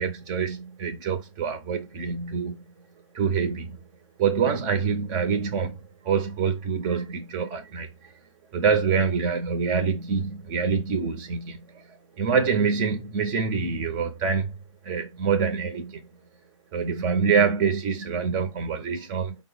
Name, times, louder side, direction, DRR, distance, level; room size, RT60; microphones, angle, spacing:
voice 1, 0.0-2.6 3.1-3.8 4.2-5.8 6.0-8.1 8.5-11.8 12.2-14.5 14.8-16.0 16.7-19.4, right 6 dB, 20° right, 0.6 m, -25 dB
5.1 x 2.0 x 3.8 m
hypercardioid pair, 145°, 17 cm